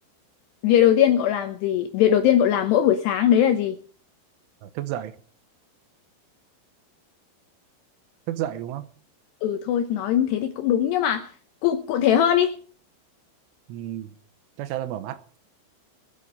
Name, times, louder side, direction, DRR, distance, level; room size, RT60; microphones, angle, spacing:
voice 1, 0.6-3.8 9.4-11.3 11.6-12.6, left 10 dB, 80° left, 2.4 m, -20 dB
voice 2, 4.6-5.2 8.3-8.9 13.7-14.2 14.6-15.2, right 12 dB, 80° right, 3.2 m, -31 dB
21.0 x 8.4 x 5.1 m
omnidirectional pair, 5.9 m